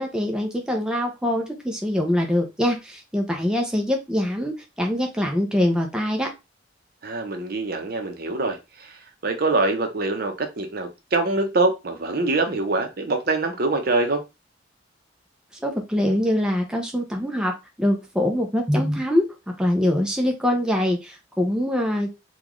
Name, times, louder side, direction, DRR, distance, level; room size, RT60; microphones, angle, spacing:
voice 1, 0.0-6.3 15.6-19.3 19.6-22.1, left 1 dB, 5° right, 0.5 m, -23 dB
voice 2, 7.0-8.9 9.2-14.2, right 3 dB, 55° right, 0.7 m, -24 dB
3.8 x 2.4 x 3.0 m
head